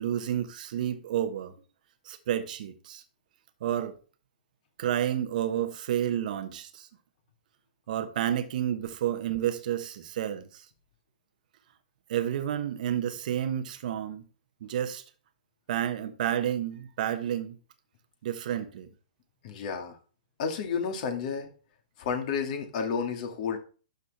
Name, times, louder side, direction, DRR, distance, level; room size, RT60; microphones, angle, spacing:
voice 1, 0.0-1.5 2.0-3.0 3.6-3.9 4.8-6.9 7.9-10.6 12.1-14.3 14.6-15.0 15.7-17.6 18.2-18.9, right 10 dB, 60° right, 1.2 m, -30 dB
voice 2, 19.4-20.0 20.4-21.5 22.0-23.6, left 6 dB, 50° left, 2.3 m, -31 dB
12.0 x 4.2 x 4.2 m
hypercardioid pair, 125°, 5 cm